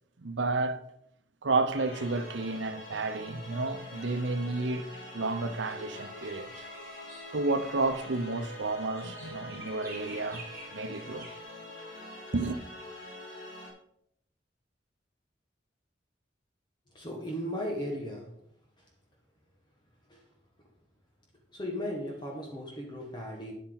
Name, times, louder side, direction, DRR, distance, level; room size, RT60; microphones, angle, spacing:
voice 1, 0.2-0.8 1.4-6.5 7.3-10.4 10.7-11.3 12.3-12.6, right 3 dB, 85° right, 0.8 m, -31 dB
sound 1, 1.7-13.7, left 1 dB, 80° left, 4.4 m, -45 dB
sound 2, 3.7-11.4, right 2 dB, 20° right, 3.2 m, -52 dB
voice 2, 16.9-18.4 18.8-18.9 20.1-20.2 21.5-23.5, equal, 25° left, 1.6 m, -36 dB
10.0 x 8.6 x 4.0 m
head